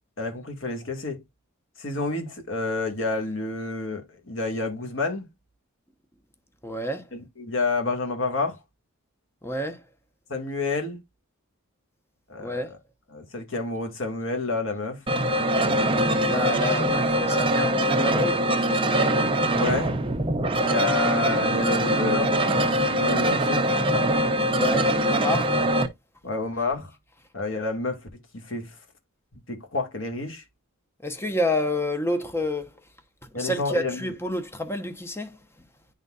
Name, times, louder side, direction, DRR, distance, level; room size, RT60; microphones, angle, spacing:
voice 1, 0.2-1.2 1.8-5.3 7.1-8.6 10.3-11.0 12.3-12.8 13.1-15.0 19.5-20.0 20.6-22.4 22.6-23.7 26.2-26.9 27.3-28.0 28.3-28.7 29.3-30.4 33.3-34.0, left 3 dB, 60° left, 1.8 m, -29 dB
voice 2, 6.6-7.1 9.4-9.8 12.4-12.7 16.2-18.4 24.4-25.7 31.0-32.8 33.2-35.7, left 1 dB, 10° left, 0.8 m, -29 dB
sound 1, 15.1-25.9, right 1 dB, 25° right, 0.7 m, -23 dB
10.5 x 4.0 x 2.4 m
head